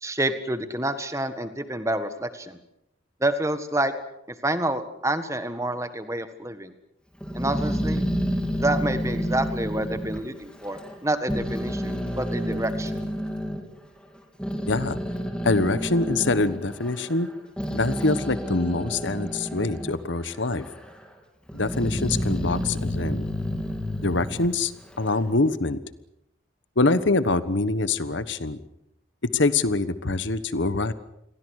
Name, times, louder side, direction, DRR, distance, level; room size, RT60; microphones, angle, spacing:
voice 1, 0.0-2.6 3.2-3.9 4.4-6.7 7.3-8.0 8.5-13.0, right 1 dB, 15° right, 10 dB, 1.6 m, -28 dB
Growling, 7.2-11.0 11.3-13.6 14.2-20.0 20.3-21.0 21.5-25.2, equal, 5° left, 3.5 m, -30 dB
voice 2, 14.7-15.0 15.4-17.3 17.7-20.6 21.5-23.2 24.0-24.7 25.0-25.8 26.8-28.6 29.2-30.9, left 3 dB, 65° left, 14 dB, 1.3 m, -24 dB
29.5 x 22.0 x 6.6 m, 0.80 s
head